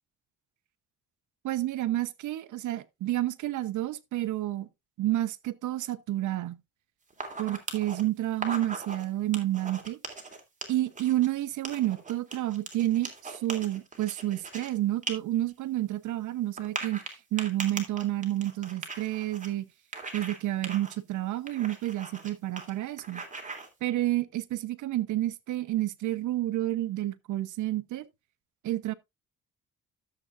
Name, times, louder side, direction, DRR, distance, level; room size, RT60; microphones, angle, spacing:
voice 1, 1.4-4.7 5.0-6.6 7.4-10.0 10.7-17.0 17.3-19.6 20.1-23.2 23.8-28.0 28.6-28.9, right 14 dB, 80° right, 0.9 m, -30 dB
sound 1, 7.1-8.0 8.3-9.0 9.3-11.3 11.6-14.7 15.0-15.1 15.5-15.6 16.6-19.5 19.9-20.4 20.6-20.9 21.5-22.3 22.6-22.7 23.0-23.7, right 3 dB, 25° right, 2.9 m, -39 dB
13.0 x 7.8 x 2.5 m
cardioid pair, 90°, 30 cm